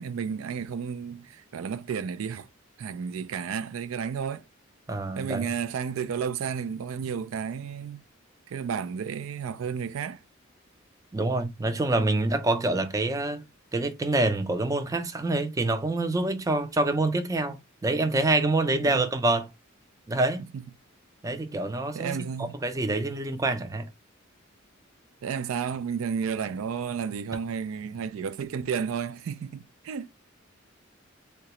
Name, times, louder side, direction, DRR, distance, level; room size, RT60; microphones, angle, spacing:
voice 1, 0.0-2.5 2.8-4.4 5.2-8.0 8.5-10.2 18.8-19.1 20.5-20.6 21.9-22.5 25.2-30.1, right 6 dB, 90° right, 0.4 m, -32 dB
voice 2, 4.9-5.6 11.1-13.5 13.7-19.5 20.1-20.5 21.2-23.9, right 2 dB, 15° right, 0.4 m, -26 dB
3.7 x 2.2 x 2.9 m
head